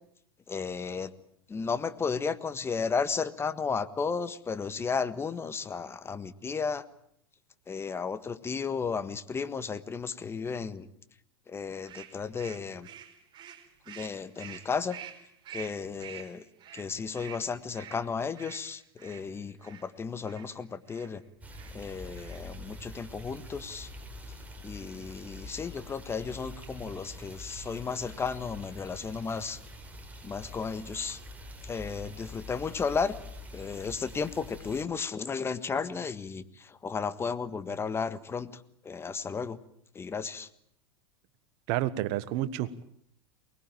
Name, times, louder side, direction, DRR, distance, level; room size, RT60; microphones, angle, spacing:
voice 1, 0.5-1.1 1.5-6.8 7.7-10.9 11.5-12.9 13.9-15.0 15.5-16.4 16.7-21.2 21.7-23.9 24.6-29.6 30.2-31.2 31.6-33.2 33.5-39.6 39.9-40.5, left 5 dB, 20° left, 13 dB, 1.5 m, -34 dB
sound 1, 11.9-19.9 20.2-20.5 20.9-21.1 21.5-21.8 22.1-22.6, right 10 dB, 35° right, 4.4 m, -47 dB
sound 2, 21.4-34.8, left 1 dB, 10° right, 5.4 m, -45 dB
voice 2, 41.7-42.9, right 13 dB, 50° right, 15 dB, 1.5 m, -30 dB
23.5 x 20.5 x 9.0 m, 0.69 s
hypercardioid pair, 95°, 13 cm